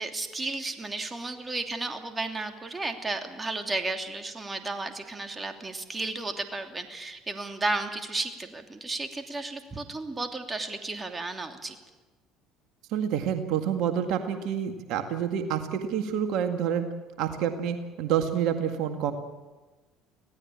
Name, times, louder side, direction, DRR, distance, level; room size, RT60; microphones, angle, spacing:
voice 1, 0.0-11.8, right 2 dB, 20° right, 5 dB, 3.0 m, -33 dB
voice 2, 12.9-16.8 17.2-19.1, right 9 dB, 65° right, 6 dB, 2.0 m, -28 dB
25.0 x 17.5 x 8.8 m, 1.2 s
hypercardioid pair, 70°, 0 cm